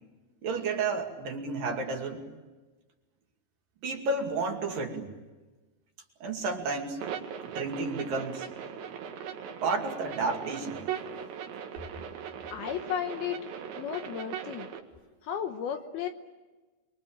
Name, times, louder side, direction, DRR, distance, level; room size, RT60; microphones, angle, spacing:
voice 1, 0.4-2.2 3.8-5.1 6.2-7.0 7.4-8.5 9.6-10.8, right 3 dB, 55° right, 2 dB, 3.9 m, -31 dB
sound 1, 7.0-14.8, right 8 dB, 75° right, 4.2 m, -39 dB
voice 2, 12.5-13.5 13.8-14.7 15.2-16.1, left 8 dB, 70° left, 6 dB, 2.7 m, -34 dB
28.5 x 23.0 x 8.9 m, 1.2 s
omnidirectional pair, 5.2 m